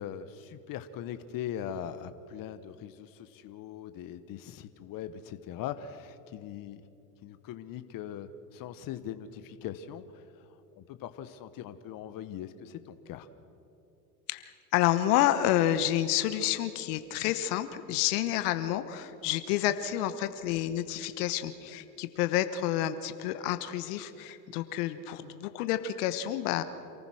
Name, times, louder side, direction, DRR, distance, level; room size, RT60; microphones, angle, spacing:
voice 1, 0.0-6.8 7.2-13.3, left 9 dB, 40° left, 11 dB, 1.2 m, -41 dB
voice 2, 14.3-26.6, left 12 dB, 65° left, 11 dB, 1.2 m, -29 dB
27.5 x 15.0 x 6.4 m, 2.8 s
hypercardioid pair, 90°, 50 cm